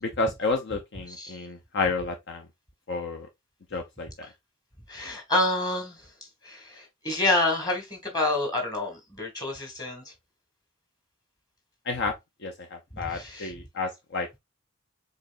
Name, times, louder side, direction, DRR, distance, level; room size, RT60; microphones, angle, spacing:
voice 1, 0.0-2.5 2.9-3.3 3.7-4.3 11.9-12.2 12.4-14.4, left 3 dB, 60° left, 0.7 m, -31 dB
voice 2, 4.9-6.0 6.4-10.0 12.9-13.5, left 2 dB, 20° left, 2.1 m, -28 dB
5.0 x 4.0 x 2.5 m
head